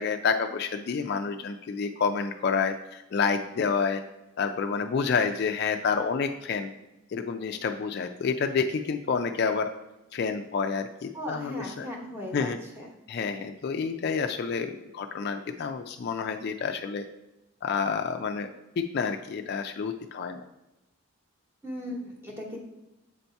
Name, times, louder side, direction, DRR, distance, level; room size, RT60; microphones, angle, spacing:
voice 1, 0.0-4.0 4.4-6.7 7.1-9.7 10.1-11.9 12.3-12.6 13.1-17.0 17.6-20.4, left 5 dB, 50° left, 6 dB, 0.3 m, -29 dB
voice 2, 11.1-12.9 21.6-22.6, left 1 dB, 10° right, -2 dB, 1.0 m, -37 dB
7.7 x 2.7 x 4.5 m, 0.98 s
head